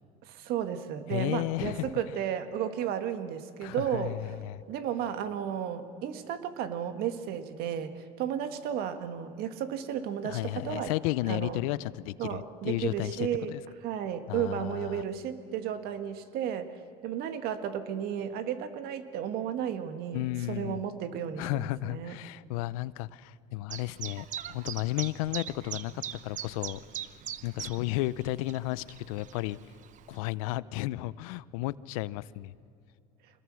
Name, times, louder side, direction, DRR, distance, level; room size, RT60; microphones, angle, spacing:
voice 1, 0.2-4.2 4.7-10.9 11.3-11.6 12.2-13.5 13.8-16.7 17.0-22.2, right 9 dB, 65° right, 9 dB, 1.7 m, -33 dB
voice 2, 1.1-1.9 3.6-4.6 10.2-13.6 14.3-15.0 20.1-20.8 21.4-26.8 27.4-29.6 30.1-32.5, left 17 dB, 85° left, 19 dB, 0.6 m, -33 dB
Chirp tweet, 23.7-30.2, right 10 dB, 45° right, 0.9 m, -41 dB
25.5 x 20.5 x 6.3 m, 2.5 s
supercardioid pair, 100°, 17 cm